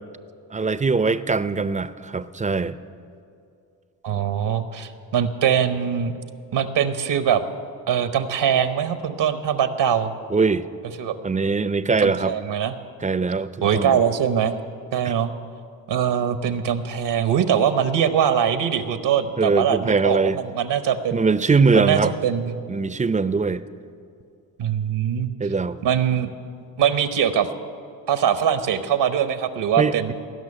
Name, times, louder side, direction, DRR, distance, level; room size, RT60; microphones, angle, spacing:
voice 1, 0.5-2.8 10.3-10.6 11.2-12.3 13.0-13.9 15.0-15.1 19.4-20.4 21.1-22.1 22.7-23.6 25.4-25.8 29.8-30.1, right 4 dB, 15° right, 14 dB, 0.6 m, -21 dB
voice 2, 4.0-6.1 6.5-7.4 7.9-10.1 11.0-11.1 12.0-12.8 13.6-14.6 14.9-15.3 15.9-21.2 21.7-22.6 24.6-25.3 25.8-26.3 26.8-27.5 28.1-30.1, right 8 dB, 65° right, 10 dB, 1.0 m, -22 dB
18.0 x 6.1 x 9.8 m, 2.5 s
supercardioid pair, 55°, 44 cm